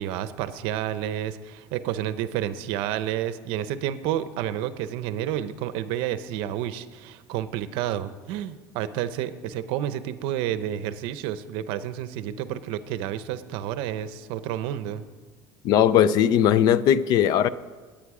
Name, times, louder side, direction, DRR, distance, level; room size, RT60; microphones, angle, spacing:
voice 1, 0.0-15.0, right 11 dB, 65° right, 13 dB, 0.7 m, -30 dB
voice 2, 15.6-17.5, left 10 dB, 45° left, 17 dB, 0.4 m, -19 dB
20.0 x 8.8 x 4.9 m, 1.4 s
cardioid pair, 175°, 9 cm